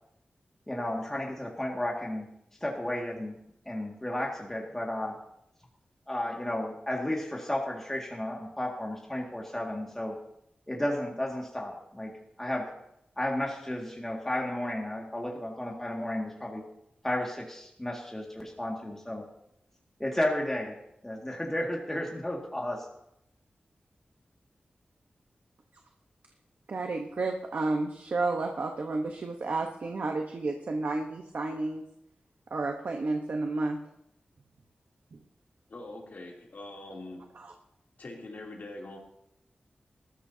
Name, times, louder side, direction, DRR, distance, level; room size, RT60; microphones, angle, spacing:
voice 1, 0.7-2.3 2.6-3.4 3.7-5.2 6.1-10.2 10.7-12.1 12.4-12.7 13.2-16.6 17.0-19.2 20.0-20.8 21.0-22.9, left 1 dB, 10° left, -1 dB, 2.0 m, -33 dB
voice 2, 26.7-31.8 32.5-33.8 35.1-35.2 37.3-37.5, right 3 dB, 65° right, 3 dB, 1.0 m, -31 dB
voice 3, 35.7-37.2 38.0-39.0, left 2 dB, 60° left, -1 dB, 2.9 m, -43 dB
20.0 x 13.5 x 2.8 m, 0.78 s
wide cardioid pair, 115°, 3 cm